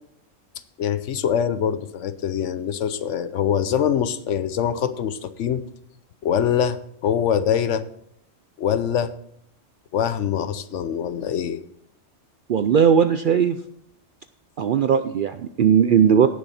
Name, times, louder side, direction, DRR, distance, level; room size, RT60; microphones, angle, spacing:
voice 1, 0.8-5.6 6.2-7.8 8.6-9.1 9.9-11.6, left 8 dB, 70° left, 13 dB, 1.0 m, -24 dB
voice 2, 12.5-13.6 14.6-16.3, right 7 dB, 65° right, 10 dB, 0.5 m, -18 dB
17.0 x 6.3 x 4.2 m, 0.71 s
omnidirectional pair, 1.3 m